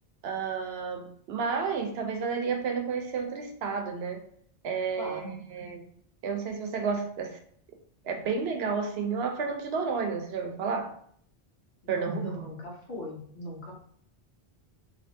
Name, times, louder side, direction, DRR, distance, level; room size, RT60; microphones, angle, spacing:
voice 1, 0.2-4.2 4.6-5.8 6.2-7.4 8.0-10.9 11.9-12.5, right 5 dB, 80° right, 3 dB, 0.8 m, -31 dB
voice 2, 5.0-5.3 11.8-13.7, left 1 dB, 75° left, -2 dB, 1.2 m, -40 dB
3.3 x 2.8 x 2.6 m, 0.64 s
omnidirectional pair, 1.0 m